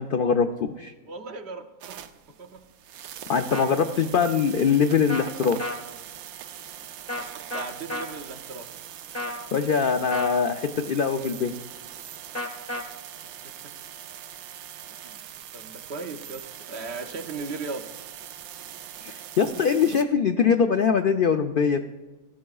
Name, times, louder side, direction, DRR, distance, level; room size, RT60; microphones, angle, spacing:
voice 1, 0.0-0.9 3.3-5.7 9.5-11.6 19.0-21.8, left 6 dB, 70° left, 6 dB, 0.5 m, -23 dB
voice 2, 1.1-2.0 2.4-2.6 7.5-8.7 13.4-13.5 14.9-15.2 15.5-17.9, right 4 dB, 55° right, 6 dB, 0.9 m, -37 dB
sound 1, 1.8-20.0, right 10 dB, 85° right, 1.1 m, -42 dB
sound 2, 3.5-3.7 5.1-5.2 5.6-5.8 7.1-7.2 7.5-8.1 9.1-9.4 10.1-10.4 12.3-12.8, left 1 dB, 15° left, 0.7 m, -31 dB
18.0 x 12.0 x 2.3 m, 1.1 s
omnidirectional pair, 1.5 m